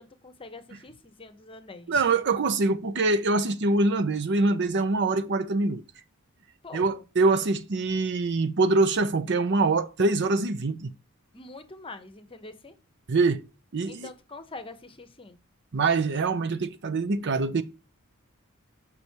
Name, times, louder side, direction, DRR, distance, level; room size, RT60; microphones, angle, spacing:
voice 1, 0.0-2.0 6.6-7.0 11.3-12.7 13.9-15.4, left 3 dB, 25° left, 0.9 m, -44 dB
voice 2, 1.9-5.8 6.7-10.9 13.1-13.4 13.7-14.1 15.7-17.6, right 3 dB, 55° right, 0.6 m, -24 dB
6.9 x 5.4 x 4.5 m
head